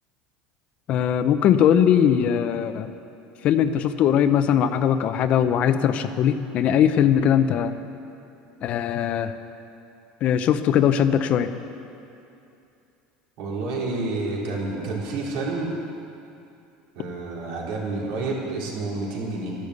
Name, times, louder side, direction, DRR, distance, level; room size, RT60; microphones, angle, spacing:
voice 1, 0.9-2.9 3.4-7.7 8.6-9.3 10.2-11.5, left 9 dB, 40° left, 10 dB, 0.7 m, -20 dB
voice 2, 13.4-15.7 16.9-19.6, right 3 dB, 75° right, -4 dB, 4.1 m, -29 dB
12.5 x 12.0 x 8.2 m, 2.7 s
cardioid pair, 155°, 3 cm